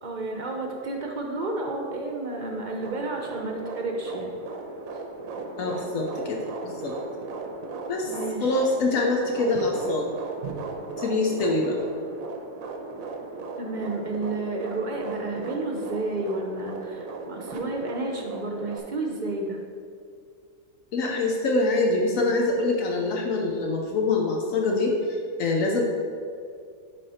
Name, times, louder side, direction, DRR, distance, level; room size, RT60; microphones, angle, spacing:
voice 1, 0.0-4.3 8.1-8.6 13.6-19.6, right 2 dB, 45° right, 1 dB, 0.7 m, -31 dB
sound 1, 2.6-18.8, right 3 dB, 80° right, 1.1 m, -36 dB
voice 2, 5.6-6.9 7.9-8.1 8.4-10.1 11.0-11.7 20.9-25.8, left 2 dB, 75° left, 0 dB, 1.1 m, -25 dB
9.9 x 3.3 x 4.2 m, 2.3 s
omnidirectional pair, 1.5 m